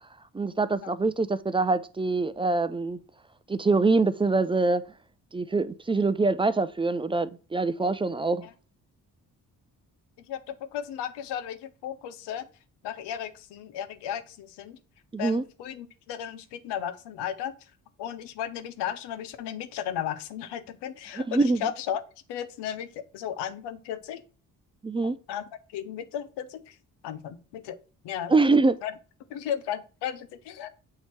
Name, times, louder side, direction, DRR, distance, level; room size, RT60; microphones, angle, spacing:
voice 1, 0.3-3.0 3.5-4.8 5.3-8.5 15.1-15.4 21.2-21.6 24.8-25.2 28.3-28.8, right 3 dB, 15° right, 0.4 m, -24 dB
voice 2, 10.2-12.5 12.8-14.8 15.2-17.7 18.0-22.0 22.3-24.2 25.3-26.8 27.0-27.8 28.0-28.9 29.3-30.7, left 9 dB, 80° left, 0.7 m, -35 dB
7.6 x 2.8 x 4.4 m
supercardioid pair, 50°, 41 cm